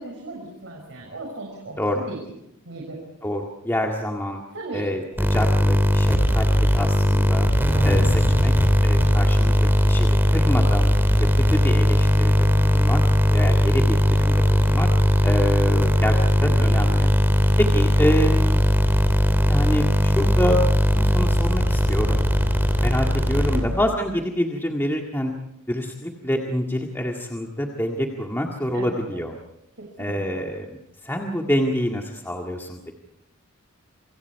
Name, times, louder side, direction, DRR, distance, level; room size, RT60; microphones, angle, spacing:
voice 1, 0.0-2.2 2.6-3.0 4.5-4.8 7.7-8.3 23.5-23.8 28.7-29.2 29.8-30.5, right 2 dB, 60° right, -1 dB, 6.3 m, -36 dB
voice 2, 3.2-4.4 4.7-5.0 5.3-6.5 6.7-7.5 7.8-8.5 8.8-10.9 11.4-13.0 13.3-14.9 15.2-17.1 17.6-18.6 19.5-20.6 20.9-22.2 22.8-25.3 25.7-29.4 30.0-33.0, equal, 10° left, 0 dB, 1.9 m, -27 dB
sound 1, 5.2-24.0, equal, 10° right, 3.0 m, -19 dB
28.0 x 25.5 x 4.7 m, 0.84 s
head